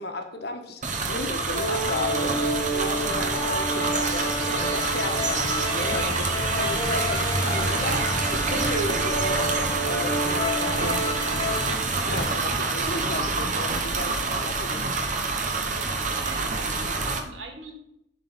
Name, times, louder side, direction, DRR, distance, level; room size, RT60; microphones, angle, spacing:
voice 1, 0.0-14.8, left 2 dB, 55° left, 5 dB, 1.3 m, -34 dB
sound 1, 0.8-17.2, right 3 dB, 40° right, 1.2 m, -27 dB
sound 2, 1.6-11.7, equal, 20° left, 2.3 m, -29 dB
voice 2, 15.6-17.7, right 2 dB, 75° right, 3 dB, 2.2 m, -41 dB
11.5 x 4.1 x 5.6 m, 0.78 s
head